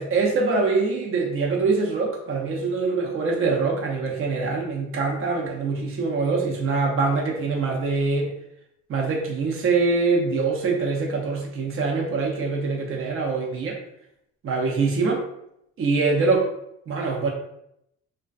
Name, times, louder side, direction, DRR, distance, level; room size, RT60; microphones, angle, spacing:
voice 1, 0.0-8.3 8.9-13.8 14.4-15.2 15.8-16.5 16.9-17.3, right 4 dB, 45° right, 0 dB, 0.6 m, -24 dB
2.4 x 2.3 x 2.3 m, 0.78 s
cardioid pair, 90°, 30 cm